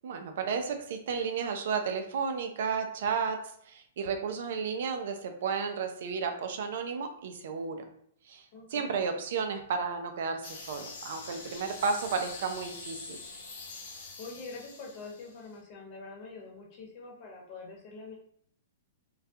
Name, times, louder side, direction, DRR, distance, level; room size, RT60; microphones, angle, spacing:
voice 1, 0.0-7.8 8.3-8.4 8.7-13.2, right 5 dB, 60° right, 6 dB, 0.4 m, -33 dB
voice 2, 8.5-8.9 14.2-18.2, left 3 dB, 40° left, -2 dB, 0.9 m, -45 dB
sound 1, 10.4-15.5, left 4 dB, 65° left, 0.6 m, -44 dB
2.3 x 2.2 x 2.6 m, 0.66 s
hypercardioid pair, 120°, 0 cm